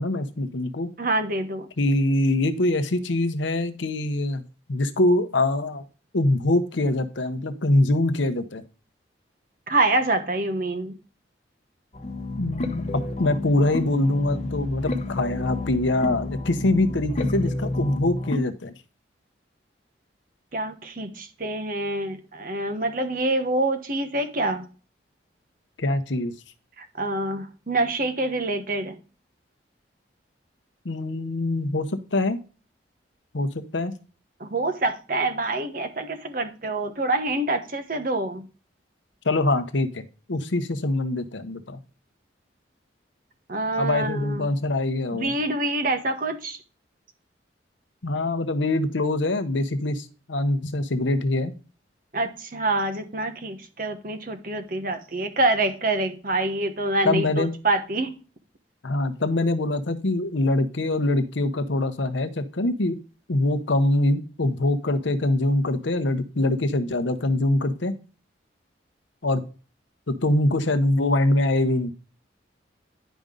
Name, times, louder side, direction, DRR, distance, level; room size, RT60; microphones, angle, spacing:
voice 1, 0.0-0.9 1.8-4.4 4.7-5.8 6.1-8.6 12.4-18.7 25.8-26.3 30.8-32.4 33.3-33.9 39.2-41.8 43.8-45.3 48.0-51.5 57.0-57.5 58.8-63.0 63.3-67.9 69.2-69.4 70.1-71.9, left 2 dB, 80° left, 9 dB, 0.9 m, -24 dB
voice 2, 1.0-1.7 9.7-10.9 20.5-24.7 26.8-29.0 34.4-38.5 43.5-44.5 45.1-46.6 52.1-58.1, right 2 dB, 45° right, 7 dB, 1.1 m, -26 dB
sound 1, 11.9-18.4, left 2 dB, 35° left, 0.9 m, -30 dB
10.5 x 5.2 x 3.7 m, 0.35 s
head